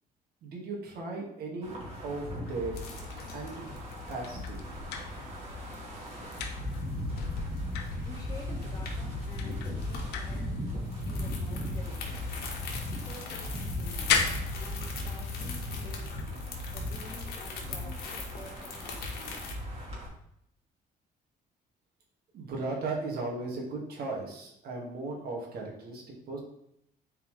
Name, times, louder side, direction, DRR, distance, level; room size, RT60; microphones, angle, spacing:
voice 1, 0.4-2.8 3.3-3.5 4.1-4.6 22.3-26.4, right 3 dB, 65° right, -1 dB, 2.1 m, -36 dB
Wind, 1.6-20.1, left 1 dB, 35° right, 2.4 m, -37 dB
sound 1, 2.5-5.8 6.1-8.5 9.0-9.1 9.3-12.7 13.0-15.2 15.9-16.3 16.7-16.8 19.9-20.1, left 6 dB, 90° left, 0.8 m, -36 dB
sound 2, 2.7-19.5, left 4 dB, 65° left, 1.6 m, -44 dB
voice 2, 8.0-10.5 11.1-12.4 12.9-14.1 14.5-16.1 16.7-19.4, left 2 dB, 20° left, -2 dB, 1.9 m, -49 dB
7.3 x 4.7 x 3.3 m, 0.75 s
cardioid pair, 110°, 17 cm